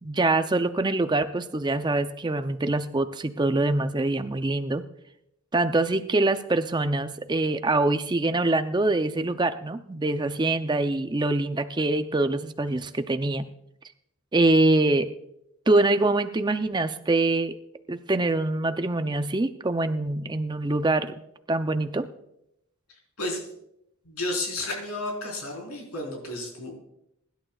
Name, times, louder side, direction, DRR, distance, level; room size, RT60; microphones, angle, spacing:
voice 1, 0.0-4.8 5.5-13.5 14.3-15.1 15.7-17.5 17.9-21.1 21.5-22.1, right 2 dB, 20° right, 9 dB, 0.5 m, -24 dB
voice 2, 23.2-23.5 24.0-26.7, left 2 dB, 80° left, -1 dB, 4.3 m, -32 dB
23.0 x 11.5 x 2.4 m, 0.80 s
head